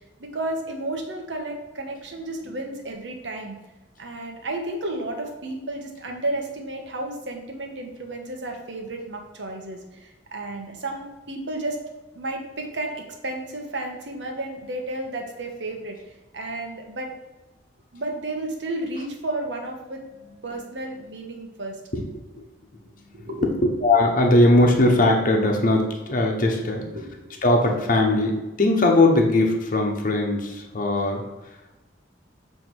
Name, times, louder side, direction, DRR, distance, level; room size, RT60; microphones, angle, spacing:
voice 1, 0.2-3.6 4.0-11.8 12.1-16.0 16.3-17.1 17.9-20.0 20.4-21.8 23.1-23.5 26.9-27.4, right 2 dB, 80° right, 2 dB, 1.3 m, -32 dB
voice 2, 23.1-26.8 27.4-31.2, left 2 dB, 50° left, 1 dB, 1.0 m, -20 dB
7.3 x 3.4 x 4.7 m, 1.1 s
head